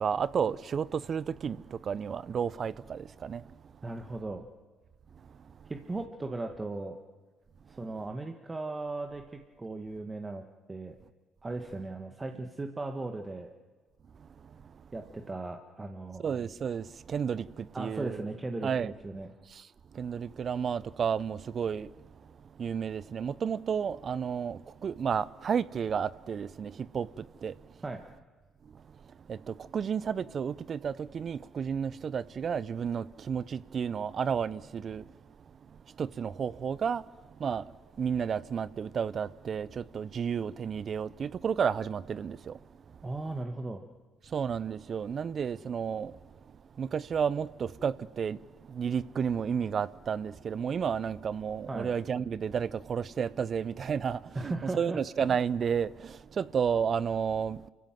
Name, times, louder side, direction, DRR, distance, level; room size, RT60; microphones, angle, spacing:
voice 1, 0.0-3.4 16.2-17.4 17.8-18.2 18.6-18.9 20.0-21.9 22.6-27.1 27.4-27.5 29.3-35.0 36.0-37.0 37.4-37.6 38.0-42.5 44.3-46.1 46.8-48.4 48.7-57.6, right 7 dB, 50° right, 0.6 m, -31 dB
voice 2, 3.8-4.4 5.7-7.0 7.7-10.4 10.7-11.0 11.4-13.5 14.9-16.2 17.7-19.3 27.8-28.0 43.0-43.8 51.7-51.9 54.4-55.0, right 2 dB, 25° right, 1.8 m, -37 dB
28.5 x 15.0 x 7.7 m
hypercardioid pair, 55°, 0 cm